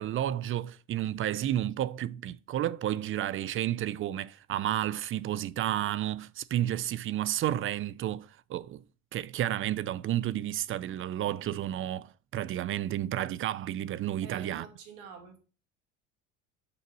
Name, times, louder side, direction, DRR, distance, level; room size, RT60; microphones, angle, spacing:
voice 1, 0.0-8.8 9.1-14.7, right 12 dB, 45° right, 0.5 m, -31 dB
voice 2, 14.2-15.4, right 6 dB, 85° right, 2.2 m, -47 dB
6.9 x 4.0 x 6.0 m
supercardioid pair, 100°, 30 cm